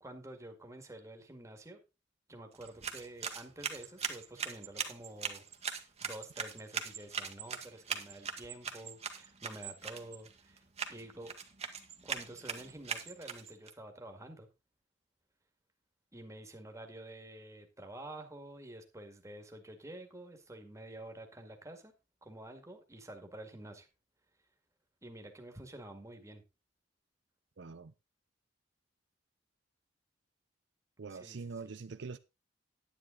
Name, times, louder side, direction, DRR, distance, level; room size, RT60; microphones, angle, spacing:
voice 1, 0.0-1.8 2.3-10.6 10.9-11.3 12.0-14.5 16.1-21.9 22.2-23.9 25.0-26.4 31.1-31.6, right 1 dB, 15° right, 2.0 m, -49 dB
sound 1, 2.5-13.7, right 6 dB, 35° right, 1.6 m, -41 dB
voice 2, 27.6-27.9 31.0-32.2, right 4 dB, 70° right, 0.6 m, -44 dB
10.0 x 10.0 x 3.9 m
head